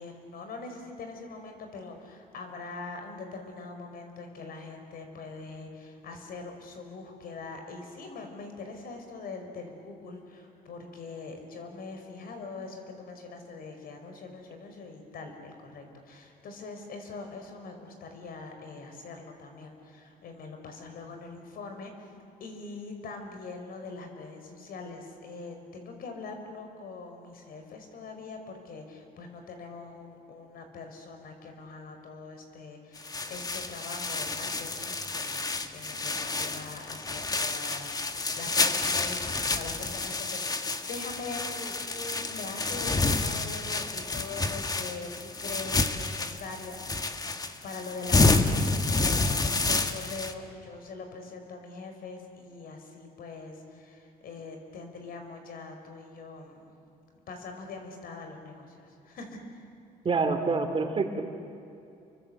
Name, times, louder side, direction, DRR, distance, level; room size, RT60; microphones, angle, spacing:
voice 1, 0.0-22.1 22.4-47.3 47.6-56.7 57.3-59.7, left 3 dB, 60° left, 5 dB, 5.5 m, -43 dB
sound 1, 33.0-50.3, left 3 dB, 20° left, 1.6 m, -29 dB
voice 2, 60.0-61.2, right 4 dB, 30° right, 5 dB, 3.1 m, -26 dB
29.5 x 24.0 x 8.0 m, 2.7 s
cardioid pair, 110°, 17 cm